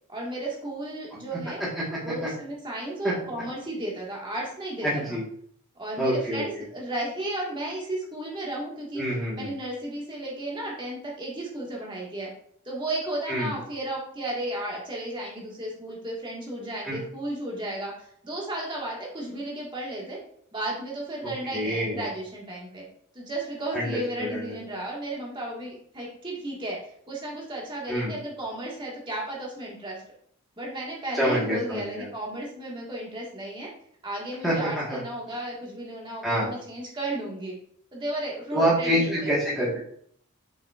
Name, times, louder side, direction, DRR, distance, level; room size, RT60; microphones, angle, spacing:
voice 1, 0.1-1.6 2.0-5.2 5.8-9.0 9.4-12.3 12.6-20.2 20.5-22.8 23.1-30.0 30.6-33.7 34.0-37.6 37.9-39.3, right 1 dB, 20° right, -3 dB, 1.6 m, -34 dB
voice 2, 4.8-5.2 6.0-6.4 8.9-9.5 13.3-13.5 16.8-17.0 21.5-22.0 23.7-24.6 27.9-28.1 31.1-32.0 34.4-35.0 36.2-36.5 38.5-39.8, equal, ahead, -9 dB, 1.4 m, -26 dB
6.9 x 6.1 x 2.4 m, 0.65 s
head